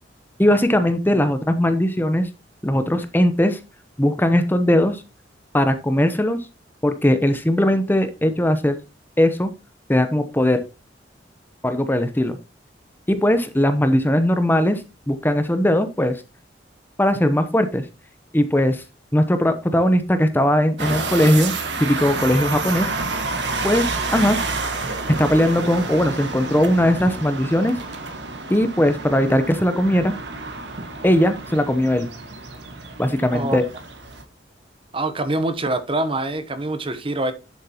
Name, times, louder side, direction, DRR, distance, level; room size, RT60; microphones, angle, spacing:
voice 1, 0.4-2.3 2.6-3.6 4.0-5.0 5.5-6.4 6.8-8.8 9.2-9.5 9.9-10.6 11.6-12.4 13.1-14.8 15.1-16.2 17.0-17.8 18.3-18.8 19.1-21.5 21.8-22.9 23.6-24.4 25.2-27.7 28.5-30.1 31.0-32.1 33.0-33.6, left 1 dB, 10° left, 0.8 m, -19 dB
sound 1, 20.8-34.2, right 3 dB, 70° right, 1.7 m, -29 dB
voice 2, 34.9-37.3, right 2 dB, 30° right, 0.9 m, -24 dB
10.5 x 7.3 x 2.9 m
head